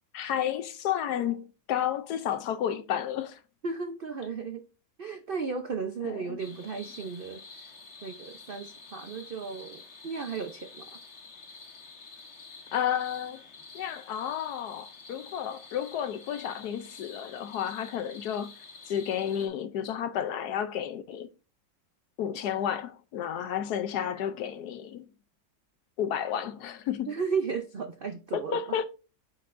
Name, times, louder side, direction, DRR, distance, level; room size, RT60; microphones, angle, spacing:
voice 1, 0.1-3.4 6.0-6.4 12.7-13.4 13.7-18.5 18.9-21.3 22.2-25.1 26.0-27.1 28.3-28.8, left 9 dB, 70° left, 1.1 m, -31 dB
voice 2, 3.6-4.6 5.0-7.7 8.0-10.9 27.1-28.8, right 5 dB, 80° right, 0.5 m, -35 dB
sound 1, 6.4-19.5, left 4 dB, 45° left, 1.4 m, -49 dB
8.6 x 5.7 x 2.5 m
omnidirectional pair, 1.9 m